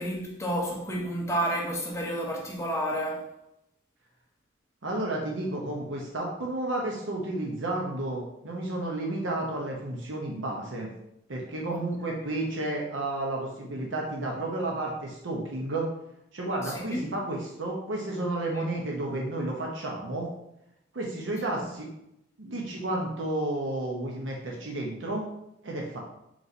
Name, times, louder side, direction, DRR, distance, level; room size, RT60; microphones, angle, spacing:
voice 1, 0.0-3.3 16.7-17.0 18.6-18.7, right 1 dB, 15° left, 0.7 m, -30 dB
voice 2, 4.8-10.9 11.3-15.9 16.3-20.3 20.9-21.9 22.4-25.2 25.6-26.0, right 2 dB, 85° right, 0.8 m, -32 dB
4.1 x 3.2 x 3.9 m
head